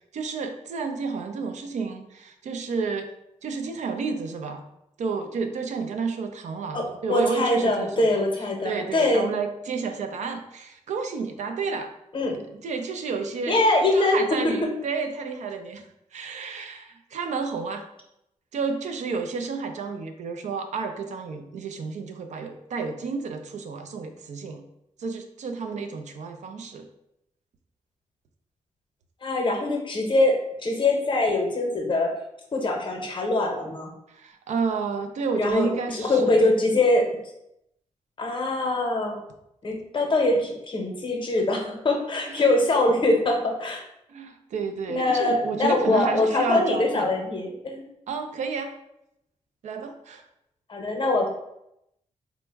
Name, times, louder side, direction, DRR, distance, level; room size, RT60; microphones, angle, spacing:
voice 1, 0.1-3.1 3.4-4.6 5.0-8.2 8.6-11.9 12.5-13.6 13.9-15.8 16.1-17.8 18.5-24.6 25.0-26.9 34.1-36.4 42.3-42.6 44.1-47.2 48.1-48.7 49.6-50.2, right 5 dB, 70° right, 6 dB, 0.4 m, -31 dB
voice 2, 6.7-9.3 12.1-12.4 13.5-14.2 29.2-32.2 32.5-33.9 35.4-37.1 38.2-39.2 39.6-43.8 44.9-47.8 50.7-51.3, left 2 dB, 40° left, 2 dB, 0.7 m, -23 dB
3.4 x 2.0 x 3.3 m, 0.82 s
cardioid pair, 85°, 13 cm